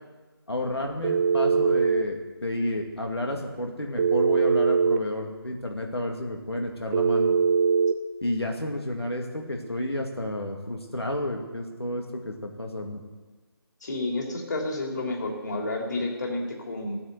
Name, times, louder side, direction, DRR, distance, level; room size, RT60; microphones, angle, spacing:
voice 1, 0.5-7.3 8.2-13.0, left 1 dB, 85° left, 1 dB, 2.2 m, -31 dB
Telephone, 1.0-2.1 4.0-5.0 6.9-8.0, right 6 dB, 25° right, 0.7 m, -21 dB
voice 2, 13.8-17.0, left 2 dB, 45° left, 1 dB, 3.0 m, -30 dB
15.5 x 9.5 x 8.1 m, 1.3 s
figure-of-eight pair, 150°, 13 cm